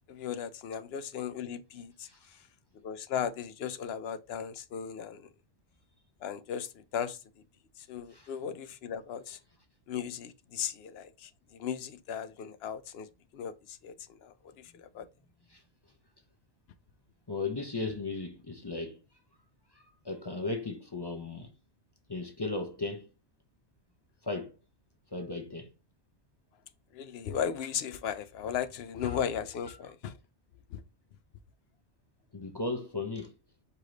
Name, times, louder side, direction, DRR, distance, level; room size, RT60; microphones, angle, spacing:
voice 1, 0.1-2.4 2.8-5.3 6.2-7.2 7.8-9.4 9.9-15.1 26.9-30.2 30.7-30.8, left 8 dB, 65° left, 0.8 m, -37 dB
voice 2, 17.3-19.0 19.7-21.5 22.1-23.1 24.2-24.6 25.1-25.7 29.0-29.2 32.3-33.3, left 3 dB, 35° left, 0.4 m, -36 dB
4.9 x 2.9 x 3.7 m
omnidirectional pair, 1.2 m